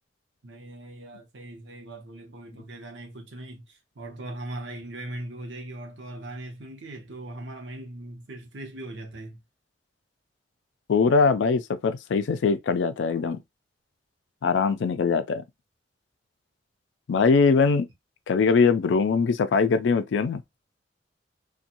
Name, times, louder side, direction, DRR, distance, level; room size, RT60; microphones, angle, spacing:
voice 1, 0.4-9.4, right 1 dB, 75° right, 0.8 m, -40 dB
voice 2, 10.9-13.4 14.4-15.4 17.1-17.8 18.3-20.4, left 5 dB, 75° left, 0.4 m, -22 dB
2.6 x 2.2 x 2.8 m
head